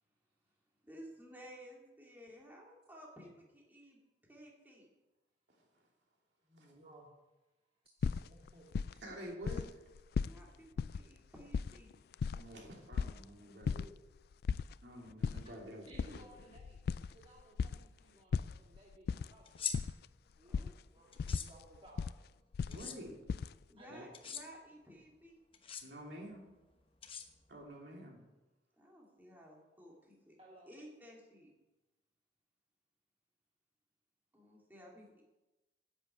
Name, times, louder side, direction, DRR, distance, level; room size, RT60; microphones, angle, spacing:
voice 1, 0.8-4.9 10.3-12.0 20.5-20.7 23.7-25.4 28.8-30.4 30.7-31.5 34.3-35.2, equal, 10° right, -2 dB, 2.7 m, -55 dB
voice 2, 6.4-7.4 7.8-9.0 15.4-15.5 15.8-16.8 17.1-19.7 20.3-20.5 20.9-22.1 23.2-23.3 23.8-24.5 30.4-30.7, right 1 dB, 35° right, -3 dB, 2.0 m, -60 dB
sound 1, 8.0-9.1 9.4-9.7 9.9-10.4 10.8-11.0 11.4-13.2 13.6-13.9 14.2-14.7 15.1-15.4 15.9-17.8 18.3-19.3 19.5-20.0 20.5-20.7 21.2-22.1 22.5-23.5, left 5 dB, 60° left, 0.3 m, -36 dB
voice 3, 9.0-9.6 12.3-13.9 14.8-16.3 22.7-23.2 23.9-24.0 25.8-26.4 27.5-28.2, equal, 70° right, 0 dB, 2.9 m, -49 dB
sound 2, 19.5-19.8 21.1-21.5 22.7-23.0 24.1-24.4 25.5-25.8 27.0-27.6, left 7 dB, 30° left, 1.0 m, -41 dB
10.5 x 8.1 x 8.5 m, 1.0 s
head